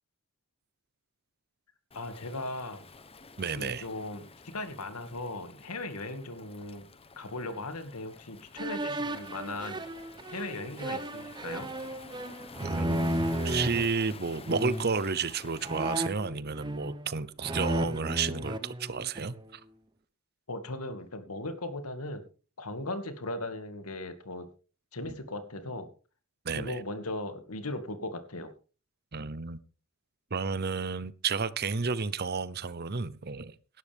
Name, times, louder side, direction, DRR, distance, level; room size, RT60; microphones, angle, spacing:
voice 1, 1.9-2.9 3.6-6.8 7.2-9.8 10.3-11.7 20.5-22.2 22.6-24.5 24.9-25.9 26.5-28.5, left 2 dB, 90° left, 2.2 m, -38 dB
Waves surf, 1.9-16.1, left 4 dB, 25° left, 1.0 m, -50 dB
voice 2, 3.4-3.9 12.6-19.6 25.0-25.1 26.4-26.8 29.1-29.6 30.3-33.8, right 5 dB, 45° right, 0.8 m, -32 dB
sound 1, 8.6-13.8 14.5-15.0 15.6-17.1 17.4-19.4, right 1 dB, 20° right, 1.0 m, -33 dB
17.5 x 12.0 x 3.6 m
head